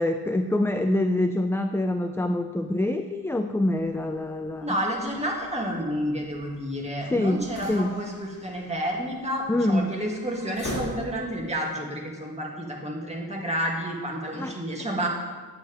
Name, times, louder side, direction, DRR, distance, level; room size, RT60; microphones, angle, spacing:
voice 1, 0.0-4.8 7.0-7.9 9.5-9.9 14.3-14.6, left 1 dB, 5° left, 7 dB, 0.3 m, -25 dB
sound 1, 3.8-11.5, equal, 50° left, 2.8 m, -42 dB
voice 2, 4.6-15.1, equal, 15° right, -2 dB, 2.1 m, -30 dB
9.1 x 9.0 x 3.4 m, 1.5 s
cardioid pair, 60°, 40 cm